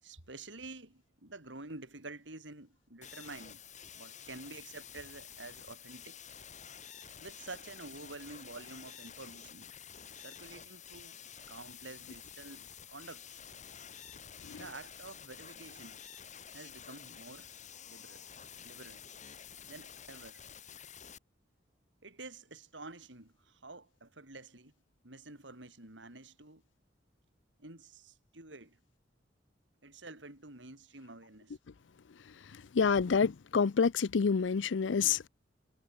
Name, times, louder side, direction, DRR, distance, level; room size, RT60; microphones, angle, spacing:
voice 1, 0.0-3.6 3.9-6.2 7.2-9.7 10.1-13.4 14.5-16.0 16.5-17.5 17.9-18.2 18.6-19.0 19.7-20.4 22.0-24.7 25.0-26.6 27.6-28.8 29.8-31.6, right 2 dB, 85° right, 4.9 m, -49 dB
sound 1, 3.0-21.2, left 8 dB, 40° left, 7.8 m, -50 dB
voice 2, 32.8-35.3, left 5 dB, 90° left, 0.5 m, -27 dB
head